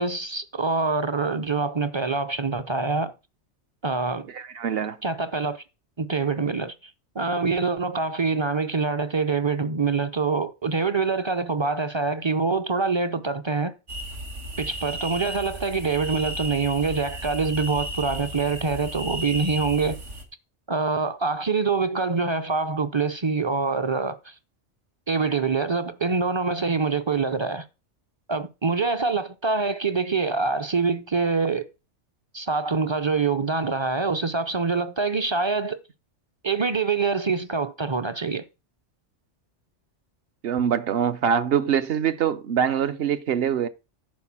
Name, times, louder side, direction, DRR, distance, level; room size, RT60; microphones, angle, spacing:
voice 1, 0.0-3.1 3.8-4.3 5.0-5.6 6.0-13.7 14.6-20.0 20.7-24.3 25.1-27.7 28.3-31.7 32.3-35.8 36.4-38.4, right 4 dB, 35° right, 0.4 m, -25 dB
voice 2, 4.3-5.0 40.4-43.7, right 8 dB, 60° right, 0.9 m, -24 dB
sound 1, 13.9-20.2, right 1 dB, 85° right, 2.2 m, -34 dB
10.5 x 4.2 x 7.3 m
omnidirectional pair, 1.2 m